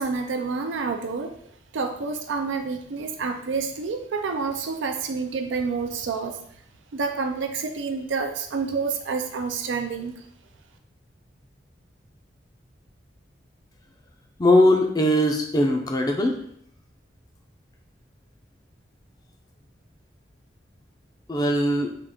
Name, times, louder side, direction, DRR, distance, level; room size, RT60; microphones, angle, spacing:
voice 1, 0.0-1.3 1.7-6.4 6.9-10.2, right 4 dB, 90° right, 5 dB, 0.4 m, -28 dB
voice 2, 14.4-16.4 21.3-21.9, left 1 dB, 20° left, 3 dB, 0.4 m, -20 dB
3.8 x 2.4 x 3.6 m, 0.66 s
head